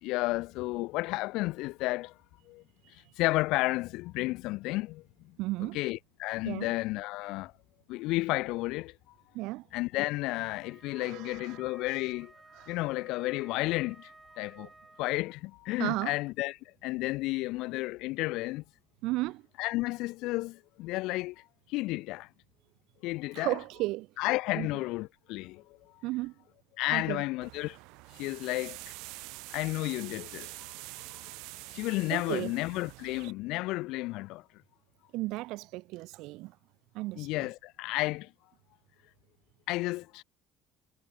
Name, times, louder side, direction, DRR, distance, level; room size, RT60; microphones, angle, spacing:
voice 1, 0.0-2.2 2.5-2.6 2.9-5.0 5.6-7.5 7.9-9.1 9.7-12.3 12.7-14.7 15.0-18.6 19.6-22.3 23.0-23.6 24.2-26.0 26.8-27.8 28.1-28.9 29.5-30.5 31.0-31.4 31.7-34.4 37.2-38.3 39.7-40.2, left 20 dB, 70° left, 0.6 m, -32 dB
voice 2, 5.4-5.8 6.4-6.7 9.3-9.7 10.9-12.1 12.5-12.8 14.6-14.7 15.8-16.1 19.0-19.4 23.3-24.1 24.6-24.7 26.0-26.3 26.9-27.2 32.1-32.5 35.1-36.6 36.9-37.5, right 20 dB, 65° right, 0.8 m, -34 dB
Wind instrument woodwind instrument, 10.6-15.3, right 2 dB, 10° right, 2.9 m, -56 dB
sound 1, 27.4-33.3, right 26 dB, 90° right, 1.6 m, -46 dB
cardioid pair, 170°, 0 cm